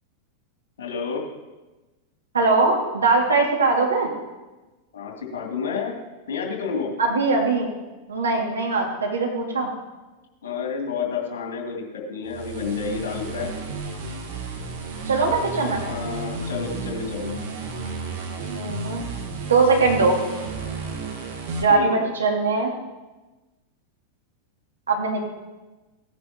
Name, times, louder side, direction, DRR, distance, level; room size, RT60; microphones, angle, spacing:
voice 1, 0.8-1.2 4.9-6.0 6.3-6.9 10.4-13.5 15.8-17.3 21.7-22.0, left 6 dB, 60° left, -1 dB, 2.6 m, -30 dB
voice 2, 2.3-4.1 7.0-7.7 8.1-9.7 15.1-15.8 18.5-19.1 19.4-20.2 21.6-22.7 24.9-25.3, right 3 dB, 70° right, 0 dB, 2.1 m, -21 dB
sound 1, 12.3-21.6, right 4 dB, 55° right, 1.5 m, -32 dB
16.5 x 9.6 x 2.9 m, 1.2 s
figure-of-eight pair, 90°, 0 cm